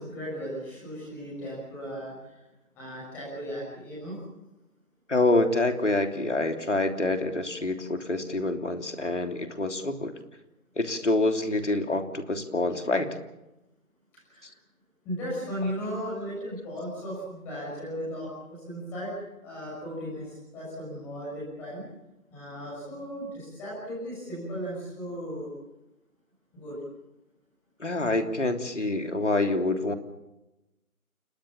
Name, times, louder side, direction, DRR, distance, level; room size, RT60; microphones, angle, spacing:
voice 1, 0.0-2.3 2.7-4.2 14.3-14.5 15.0-19.1 19.4-21.8 22.3-25.5 26.5-26.8, equal, 5° left, -6 dB, 6.2 m, -36 dB
voice 2, 5.1-10.1 10.8-13.1 27.8-29.9, left 2 dB, 50° left, 6 dB, 3.2 m, -26 dB
29.5 x 18.0 x 7.3 m, 0.96 s
figure-of-eight pair, 170°, 44 cm